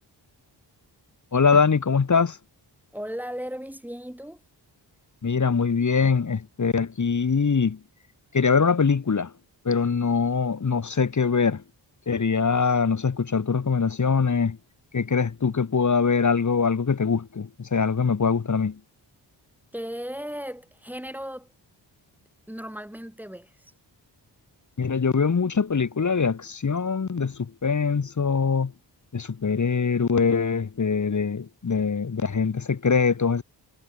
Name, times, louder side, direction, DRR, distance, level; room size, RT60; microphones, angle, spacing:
voice 1, 1.3-2.4 5.2-7.8 8.3-9.3 9.6-11.6 12.1-14.6 14.9-18.8 24.8-28.7 29.1-33.4, left 5 dB, 40° left, 2.4 m, -23 dB
voice 2, 2.9-4.4 19.7-21.5 22.5-23.7, equal, 5° right, 6.6 m, -36 dB
wide cardioid pair, 140°, 43 cm